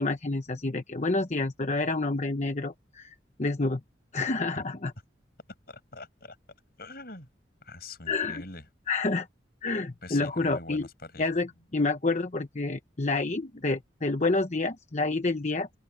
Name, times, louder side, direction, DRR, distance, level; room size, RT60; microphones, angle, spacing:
voice 1, 0.0-3.8 4.1-4.9 8.1-8.4 8.9-9.3 9.6-10.8 11.2-15.7, left 3 dB, 40° left, 0.9 m, -28 dB
voice 2, 5.7-6.4 6.8-7.3 7.6-8.7 10.0-11.3, left 2 dB, 55° left, 7.5 m, -43 dB
head